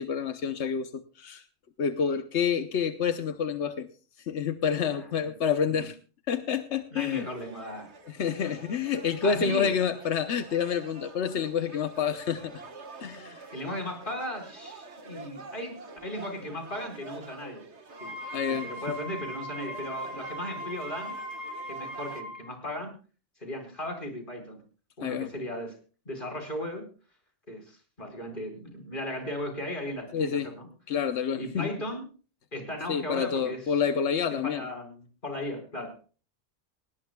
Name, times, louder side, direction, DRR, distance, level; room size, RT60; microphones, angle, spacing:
voice 1, 0.0-1.4 1.8-3.9 4.3-6.0 6.3-7.3 8.1-12.6 13.0-13.4 18.3-18.7 25.0-25.3 30.1-30.5 30.9-31.7 32.9-34.7, left 7 dB, 85° left, 8 dB, 1.2 m, -28 dB
voice 2, 6.9-7.9 9.2-9.8 13.5-17.6 18.0-18.1 18.5-21.2 21.7-22.9 23.4-24.6 25.0-25.8 26.0-26.9 27.5-30.7 31.4-32.1 32.5-33.8 34.3-36.0, left 1 dB, 50° left, 4 dB, 5.1 m, -36 dB
sound 1, 7.0-22.2, right 3 dB, 85° right, 1.8 m, -47 dB
Wind instrument woodwind instrument, 17.9-22.4, equal, 40° right, 5.4 m, -39 dB
20.0 x 18.0 x 2.3 m, 0.37 s
omnidirectional pair, 1.1 m